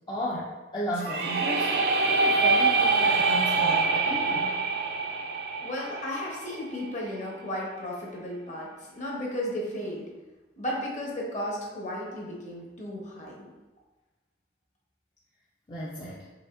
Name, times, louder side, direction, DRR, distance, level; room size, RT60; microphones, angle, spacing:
voice 1, 0.1-1.7 2.1-4.6 15.7-16.3, equal, 25° left, -6 dB, 0.4 m, -34 dB
sound 1, 1.0-6.8, right 3 dB, 65° right, 0.4 m, -25 dB
voice 2, 5.6-10.1 10.6-13.5, left 1 dB, 45° left, -3 dB, 1.0 m, -34 dB
4.8 x 3.3 x 2.5 m, 1.1 s
head